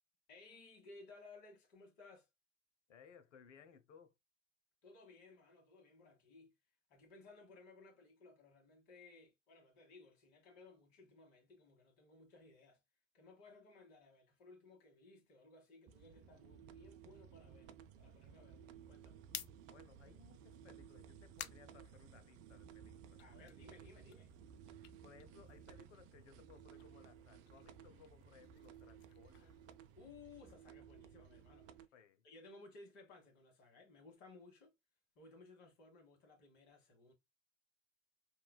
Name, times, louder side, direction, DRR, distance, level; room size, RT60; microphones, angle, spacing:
voice 1, 0.3-2.3 4.8-6.5 6.9-12.8 13.1-19.2 23.2-24.3 29.9-31.9 32.2-34.7 35.1-37.1, left 3 dB, 55° left, 1.6 m, -60 dB
voice 2, 2.9-4.1 19.7-23.2 25.0-29.5 31.9-32.2, left 6 dB, 75° left, 0.7 m, -63 dB
sound 1, 15.9-31.9, right 8 dB, 40° right, 0.7 m, -58 dB
sound 2, 19.3-22.7 23.0-26.0 26.3-30.4, left 11 dB, 30° left, 0.4 m, -55 dB
5.4 x 2.3 x 2.2 m
figure-of-eight pair, 70°, 37 cm